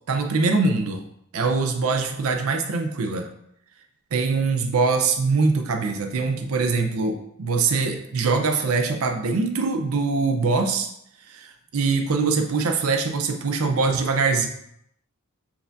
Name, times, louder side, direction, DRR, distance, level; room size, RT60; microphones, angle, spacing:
voice 1, 0.1-1.0 1.3-3.3 4.1-10.9 11.3-14.5, right 4 dB, 70° right, 5 dB, 0.5 m, -23 dB
4.7 x 3.4 x 2.6 m, 0.74 s
head